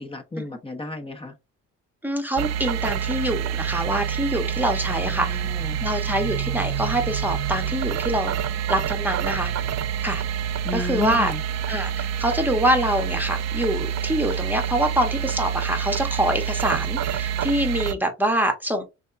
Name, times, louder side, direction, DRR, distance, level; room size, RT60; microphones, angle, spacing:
voice 1, 0.0-1.3 4.9-5.8 10.6-11.4, left 3 dB, 20° left, 1.1 m, -33 dB
voice 2, 2.0-5.4 5.8-8.3 8.7-9.5 10.0-10.2 10.7-11.3 11.7-18.8, right 1 dB, 5° right, 1.2 m, -25 dB
sound 1, 2.4-17.9, right 9 dB, 60° right, 0.5 m, -27 dB
6.3 x 2.4 x 2.6 m
cardioid pair, 90°, 30 cm